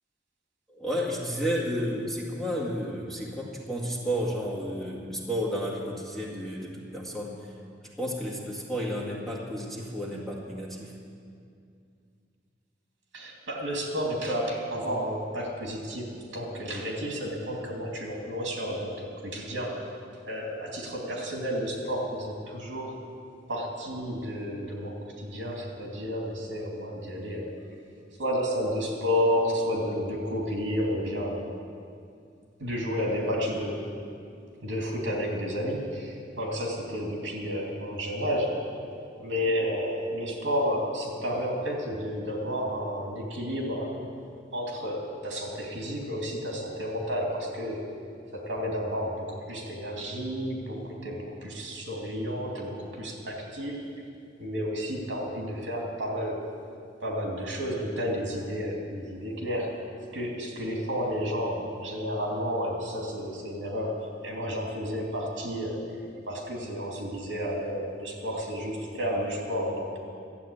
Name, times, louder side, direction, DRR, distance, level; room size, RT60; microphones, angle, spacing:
voice 1, 0.7-7.4 8.0-10.9, equal, ahead, -5 dB, 2.1 m, -32 dB
voice 2, 13.1-19.9 20.3-22.9 23.5-27.8 28.2-31.4 32.6-33.8 34.6-38.7 39.2-43.9 44.5-47.8 48.3-53.8 54.4-56.4 57.0-59.8 60.1-65.8 66.3-70.0, equal, 75° right, -1 dB, 2.7 m, -31 dB
13.0 x 8.3 x 8.7 m, 2.4 s
head